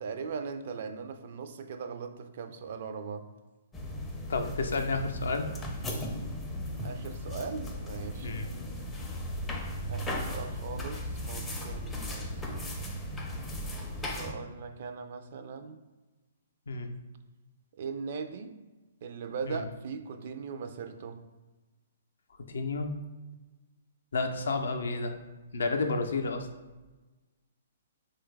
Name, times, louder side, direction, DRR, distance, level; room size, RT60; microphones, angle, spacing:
voice 1, 0.0-3.3 6.8-8.3 9.9-12.5 14.1-15.8 17.8-18.6 19.0-21.2, right 5 dB, 55° right, 8 dB, 0.3 m, -39 dB
sound 1, 3.7-14.3, left 1 dB, 15° left, 0.4 m, -36 dB
voice 2, 4.3-5.4 8.2-8.5 16.7-16.9 19.4-19.6 22.5-22.9 24.1-25.2 25.5-26.5, left 3 dB, 70° left, 5 dB, 0.4 m, -31 dB
3.3 x 2.3 x 3.2 m, 1.2 s
figure-of-eight pair, 125°, 0 cm